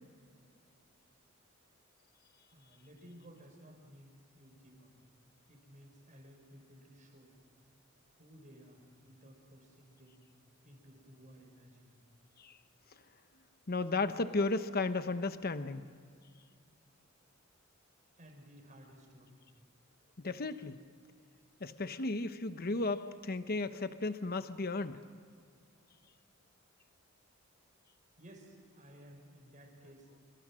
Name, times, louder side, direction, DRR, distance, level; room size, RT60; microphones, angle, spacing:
voice 1, 2.5-4.9 5.5-7.3 8.1-10.2 10.6-11.9 18.2-19.3 28.2-30.1, equal, 35° right, 2 dB, 5.8 m, -56 dB
voice 2, 13.7-15.8 20.2-20.8 21.6-25.0, left 3 dB, 45° left, 10 dB, 1.0 m, -34 dB
27.0 x 25.0 x 6.3 m, 2.1 s
head